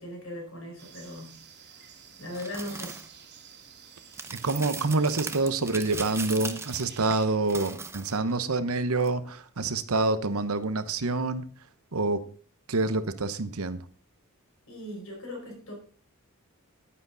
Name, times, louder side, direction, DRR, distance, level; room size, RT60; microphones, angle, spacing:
voice 1, 0.0-1.4 1.6-3.0 14.7-15.7, left 1 dB, 65° left, 1 dB, 4.9 m, -39 dB
sound 1, 0.8-7.3, right 7 dB, 50° right, 2.1 m, -50 dB
sound 2, 2.3-3.1 4.1-8.3 9.0-9.1, right 4 dB, 10° right, 0.7 m, -39 dB
voice 2, 4.3-11.5 11.9-12.2 12.7-13.9, right 3 dB, 75° right, 12 dB, 0.9 m, -27 dB
10.5 x 9.8 x 4.0 m, 0.41 s
head